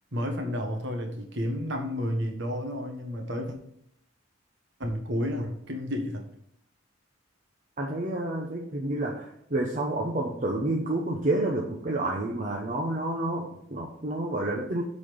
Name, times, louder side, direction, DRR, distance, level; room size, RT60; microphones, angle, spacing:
voice 1, 0.1-3.6 4.8-6.2, equal, 60° right, 3 dB, 1.5 m, -31 dB
voice 2, 7.8-14.8, right 2 dB, 40° right, -1 dB, 0.9 m, -29 dB
8.2 x 4.3 x 7.0 m, 0.71 s
head